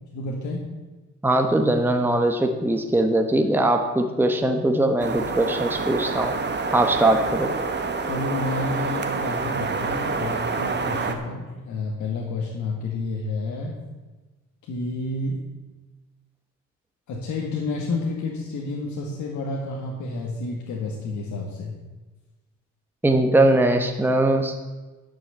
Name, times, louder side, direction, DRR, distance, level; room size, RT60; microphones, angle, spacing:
voice 1, 0.1-0.6 8.0-13.8 14.6-15.4 17.1-21.8, left 3 dB, 75° left, -1 dB, 1.9 m, -30 dB
voice 2, 1.2-6.3 6.7-7.5 23.0-24.6, right 1 dB, 5° right, 4 dB, 1.1 m, -21 dB
sound 1, 5.0-11.1, right 4 dB, 35° right, 1.4 m, -27 dB
11.0 x 6.4 x 8.0 m, 1.2 s
cardioid pair, 90°, 30 cm